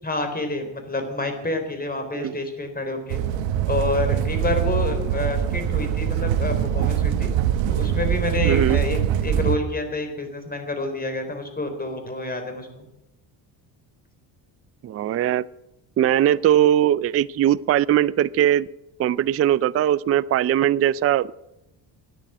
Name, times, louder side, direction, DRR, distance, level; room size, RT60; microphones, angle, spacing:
voice 1, 0.0-3.2 3.7-7.3 7.7-12.9, left 2 dB, 20° left, 6 dB, 3.9 m, -28 dB
sound 1, 3.1-9.6, right 9 dB, 80° right, 1.1 m, -23 dB
voice 2, 8.4-8.8 14.8-15.5 16.0-18.7 19.0-21.3, right 11 dB, 35° right, 19 dB, 0.4 m, -20 dB
13.0 x 10.0 x 9.2 m, 0.90 s
cardioid pair, 100°, 44 cm